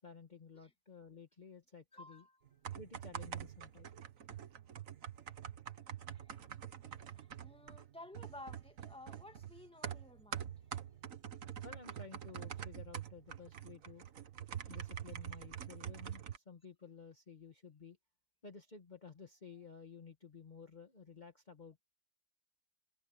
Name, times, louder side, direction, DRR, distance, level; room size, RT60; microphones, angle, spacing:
voice 1, 0.0-2.2 2.7-3.9 11.6-14.0 14.7-18.0 18.4-21.8, left 5 dB, 35° left, 1.5 m, -54 dB
voice 2, 1.9-2.4 6.1-6.5 6.8-10.7, left 1 dB, 5° left, 2.2 m, -55 dB
sound 1, 2.5-16.4, right 9 dB, 75° right, 1.6 m, -46 dB
omnidirectional pair, 1.4 m